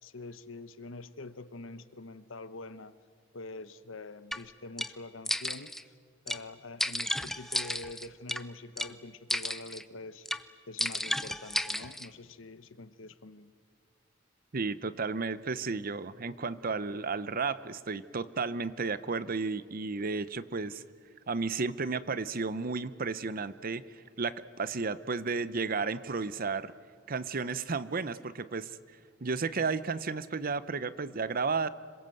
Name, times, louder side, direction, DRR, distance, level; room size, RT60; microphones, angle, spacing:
voice 1, 0.0-2.9 3.3-5.7 6.2-13.5, left 2 dB, 85° left, 13 dB, 1.1 m, -45 dB
sound 1, 4.3-4.4 4.8-4.9 5.2-5.8 6.3-6.4 6.8-8.4 8.8-8.9 9.3-9.8 10.2-10.4 10.8-12.1, left 1 dB, ahead, 0.6 m, -33 dB
voice 2, 14.5-20.8 21.3-26.7 27.1-28.7 29.2-31.7, right 4 dB, 45° right, 15 dB, 0.8 m, -33 dB
26.5 x 22.5 x 7.8 m, 2.1 s
head